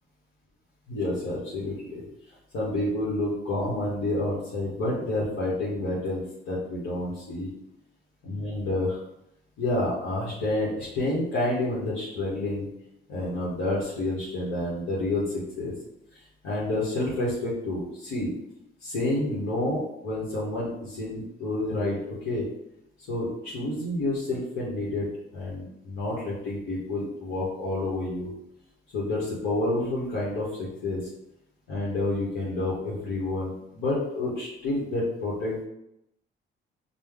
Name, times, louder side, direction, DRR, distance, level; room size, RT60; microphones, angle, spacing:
voice 1, 0.9-2.0 2.5-7.5 8.3-9.0 9.6-12.7 13.1-15.7 16.1-18.3 18.8-22.4 23.1-25.1 25.3-28.3 28.9-31.1 31.7-35.6, left 2 dB, 85° left, -6 dB, 1.1 m, -29 dB
5.2 x 2.2 x 3.5 m, 0.82 s
cardioid pair, 90°, 20 cm